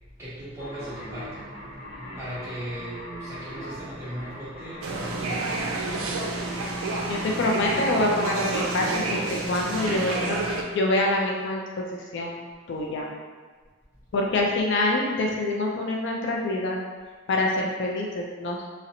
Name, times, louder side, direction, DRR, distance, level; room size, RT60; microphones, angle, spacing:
voice 1, 0.2-1.4 2.0-5.9, equal, 15° right, -11 dB, 0.7 m, -38 dB
sound 1, 0.6-10.7, equal, 40° left, 0.8 m, -41 dB
sound 2, 4.8-10.6, right 2 dB, 90° right, 0.3 m, -29 dB
voice 2, 7.1-11.6 12.1-13.1 14.1-16.8 17.3-18.6, left 2 dB, 55° left, -1 dB, 0.3 m, -26 dB
2.5 x 2.0 x 2.7 m, 1.5 s
head